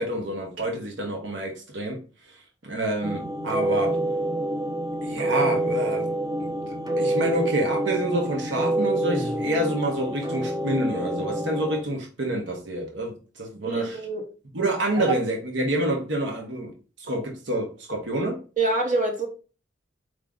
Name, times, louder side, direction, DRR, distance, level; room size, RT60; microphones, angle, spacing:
voice 1, 0.0-2.0 2.6-4.0 5.0-6.1 6.4-6.7 7.0-14.0 14.5-16.7 17.0-18.4, right 1 dB, 70° right, 1.1 m, -27 dB
sound 1, 3.0-11.8, right 1 dB, 20° right, 0.5 m, -27 dB
voice 2, 13.7-14.2 15.1-15.2 18.6-19.3, right 3 dB, 45° right, 0.9 m, -25 dB
4.9 x 2.7 x 3.6 m
head